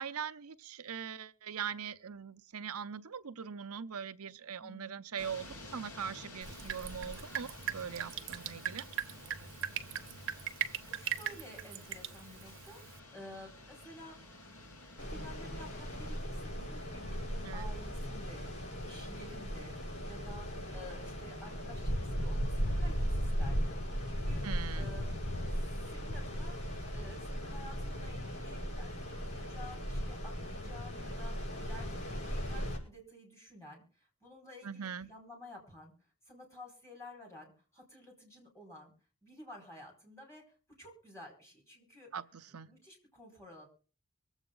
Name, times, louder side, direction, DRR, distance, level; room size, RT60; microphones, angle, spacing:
voice 1, 0.0-8.8 17.4-17.7 24.4-24.9 34.6-35.1 42.1-42.7, right 7 dB, 75° right, 0.7 m, -41 dB
voice 2, 4.6-5.0 10.8-14.2 14.9-23.8 24.1-24.4 24.7-25.2 25.9-26.6 26.9-35.9 36.2-38.9 39.2-40.4 40.8-42.1 42.7-43.7, left 1 dB, 10° left, 4.9 m, -52 dB
sound 1, 5.2-16.2, left 2 dB, 65° left, 3.3 m, -52 dB
Drip, 6.4-13.0, right 9 dB, 55° right, 1.0 m, -40 dB
sound 2, 15.0-32.8, equal, 90° left, 5.5 m, -37 dB
24.0 x 8.1 x 3.9 m
head